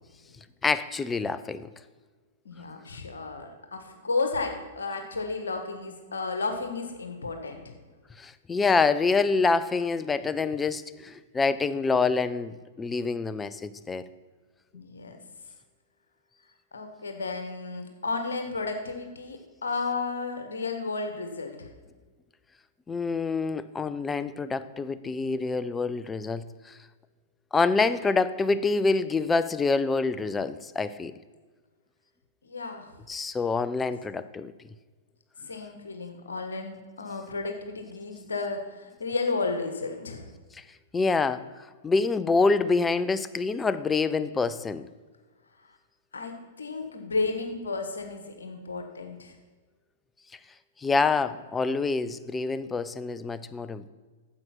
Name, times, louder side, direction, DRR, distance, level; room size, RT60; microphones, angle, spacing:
voice 1, 0.6-1.7 8.2-14.0 22.9-26.8 27.5-31.1 33.1-34.5 40.5-40.6 40.9-44.9 50.8-53.9, left 4 dB, 15° left, 13 dB, 0.5 m, -26 dB
voice 2, 2.4-7.7 14.7-15.2 16.7-21.7 32.4-32.9 34.0-34.1 35.4-40.3 46.1-49.3, left 3 dB, 75° left, 6 dB, 1.3 m, -33 dB
9.7 x 7.7 x 5.8 m, 1.4 s
figure-of-eight pair, 105°, 0 cm